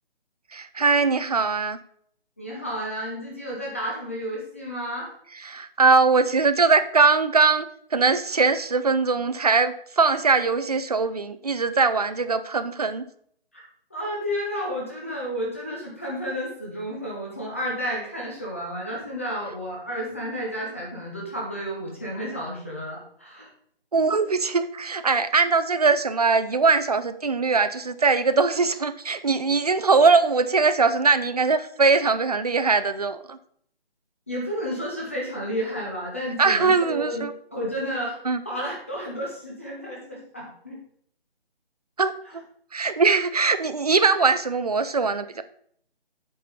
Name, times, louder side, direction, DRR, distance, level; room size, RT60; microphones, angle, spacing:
voice 1, 0.5-1.8 5.4-13.0 23.9-33.4 36.4-37.3 38.3-38.4 42.0-42.1 42.7-45.4, right 4 dB, 40° right, 11 dB, 0.4 m, -21 dB
voice 2, 2.4-5.1 13.5-13.6 13.9-23.5 34.3-38.2 38.4-40.8, equal, 15° left, -4 dB, 0.7 m, -31 dB
8.5 x 4.5 x 5.2 m, 0.64 s
hypercardioid pair, 170°, 31 cm